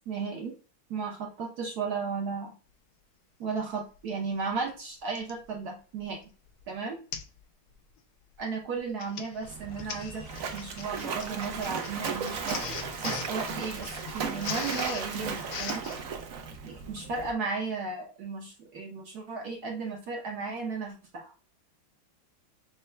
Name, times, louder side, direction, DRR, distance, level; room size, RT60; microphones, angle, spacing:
voice 1, 0.1-0.6 0.9-2.5 3.4-6.2 6.7-7.0 8.4-12.7 13.3-15.9 16.6-21.3, right 4 dB, 60° right, 0 dB, 1.1 m, -35 dB
Printer, 4.0-4.1 5.1-5.4 6.0-6.2 6.5-6.6 7.1-7.4 7.7-8.0 8.8-16.0, left 7 dB, 85° left, 1.5 m, -40 dB
Splash splatter, 9.4-17.3, right 6 dB, 80° right, 0.7 m, -36 dB
sound 1, 9.7-16.2, left 5 dB, 65° left, 0.8 m, -54 dB
6.6 x 2.2 x 3.2 m, 0.37 s
omnidirectional pair, 2.3 m